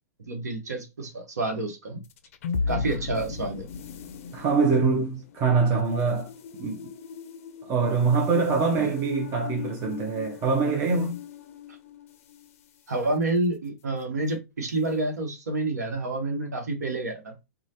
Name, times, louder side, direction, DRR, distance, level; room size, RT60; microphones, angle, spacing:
voice 1, 0.3-2.0 2.7-3.7 8.8-8.9 12.9-17.3, right 2 dB, 75° right, 1.1 m, -29 dB
sound 1, 2.0-12.6, left 6 dB, 55° left, 0.4 m, -37 dB
voice 2, 4.3-6.3 6.6-6.8 7.6-11.2, right 4 dB, 30° right, 0.6 m, -24 dB
3.1 x 2.3 x 2.7 m
figure-of-eight pair, 110°, 9 cm